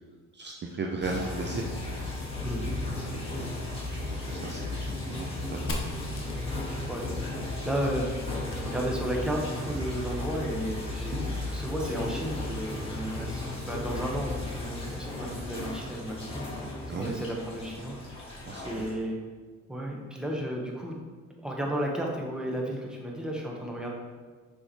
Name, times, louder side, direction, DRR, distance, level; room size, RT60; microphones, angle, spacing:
voice 1, 0.3-1.7 3.1-4.0 4.3-6.0 11.1-11.2 16.9-17.1 18.4-18.6, right 3 dB, 35° right, 1 dB, 0.6 m, -36 dB
sound 1, 1.0-18.9, left 2 dB, 20° left, 1.7 m, -35 dB
sound 2, 1.2-6.4, left 9 dB, 70° left, 0.4 m, -48 dB
Fire, 5.7-9.4, left 1 dB, 45° left, 1.1 m, -42 dB
voice 2, 6.9-11.3 11.5-18.3 18.6-19.2 19.7-21.0 21.4-23.9, right 1 dB, 5° right, -1 dB, 1.2 m, -33 dB
6.4 x 4.8 x 3.1 m, 1.5 s
cardioid pair, 90°, 30 cm